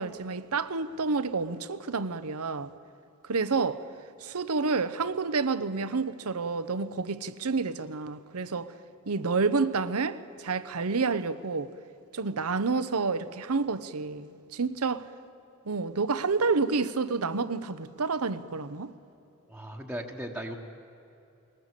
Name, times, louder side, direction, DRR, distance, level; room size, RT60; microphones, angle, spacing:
voice 1, 0.0-2.7 3.2-3.8 4.2-8.7 9.1-11.7 12.1-15.0 15.7-18.9, right 4 dB, 80° right, 0.8 m, -29 dB
voice 2, 19.5-20.6, equal, 5° right, 1.2 m, -37 dB
20.5 x 19.5 x 8.3 m
head